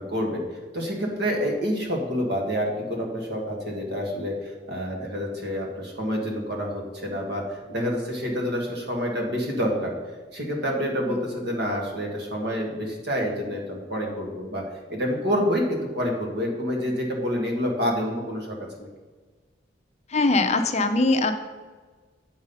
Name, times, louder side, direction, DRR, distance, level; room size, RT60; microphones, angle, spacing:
voice 1, 0.0-10.0 10.3-14.6 14.9-18.9, equal, 65° right, 0 dB, 1.9 m, -28 dB
voice 2, 20.1-21.3, left 3 dB, 40° left, 7 dB, 0.6 m, -21 dB
7.9 x 5.5 x 5.5 m, 1.4 s
head